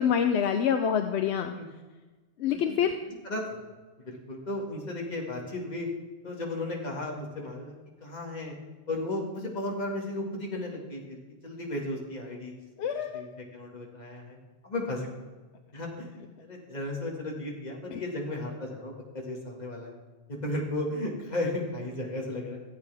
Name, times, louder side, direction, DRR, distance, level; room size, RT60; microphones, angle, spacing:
voice 1, 0.0-1.6 2.4-2.9 12.8-13.3 17.9-18.0, left 8 dB, 80° left, 7 dB, 0.9 m, -26 dB
voice 2, 3.2-3.7 4.1-5.9 6.2-8.5 8.9-12.5 13.1-13.3 13.5-14.4 14.6-15.1 15.7-20.0 20.4-22.6, left 1 dB, 40° left, -1 dB, 2.0 m, -35 dB
14.5 x 8.3 x 3.4 m, 1.3 s
omnidirectional pair, 1.1 m